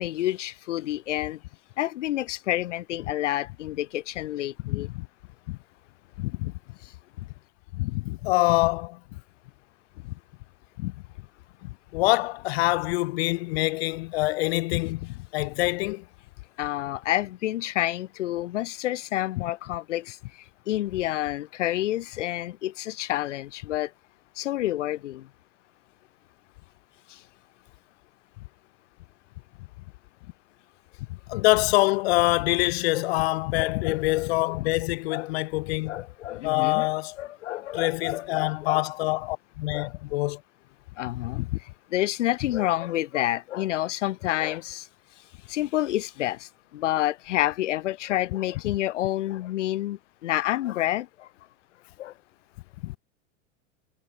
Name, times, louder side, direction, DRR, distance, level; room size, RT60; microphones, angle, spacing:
voice 1, 0.0-1.4 1.8-4.9 16.6-20.2 20.7-23.9 24.4-25.3 27.1-27.2 32.9-33.0 33.6-34.5 35.1-35.3 35.8-36.9 37.2-38.8 39.7-39.9 41.0-41.4 41.9-44.9 45.5-51.3 52.0-52.1, left 14 dB, 80° left, 1.1 m, -29 dB
voice 2, 4.7-5.1 5.5-5.6 6.2-6.5 7.7-9.0 10.0-10.1 10.8-10.9 11.6-16.0 19.4-19.5 31.1-36.0 36.4-37.2 37.7-40.4 41.3-41.6 52.8-53.0, left 21 dB, 60° left, 0.5 m, -25 dB
hypercardioid pair, 125°, 36 cm